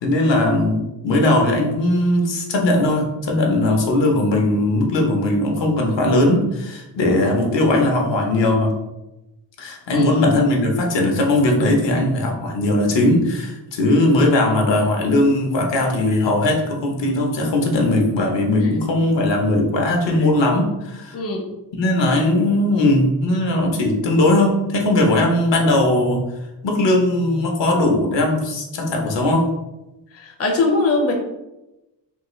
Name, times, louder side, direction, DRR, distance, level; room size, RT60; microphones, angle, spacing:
voice 1, 0.0-8.7 9.6-21.2 21.7-26.2 26.6-29.5, left 1 dB, 75° left, 1 dB, 0.8 m, -19 dB
voice 2, 21.1-21.4 30.1-31.1, left 3 dB, 35° left, 1 dB, 0.5 m, -21 dB
3.6 x 2.4 x 3.0 m, 0.96 s
wide cardioid pair, 140°, 44 cm